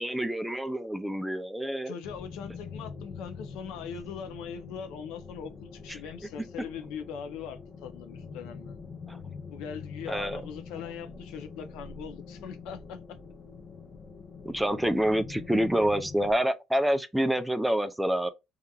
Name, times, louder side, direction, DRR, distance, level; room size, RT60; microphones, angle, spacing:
voice 1, 0.0-2.0 9.1-9.2 10.1-10.4 14.5-18.3, right 1 dB, 5° right, 0.3 m, -27 dB
voice 2, 1.9-8.8 9.5-13.2, left 7 dB, 90° left, 0.5 m, -41 dB
sound 1, 2.0-16.3, left 5 dB, 45° left, 0.6 m, -44 dB
2.8 x 2.4 x 2.3 m
cardioid pair, 130°, 0 cm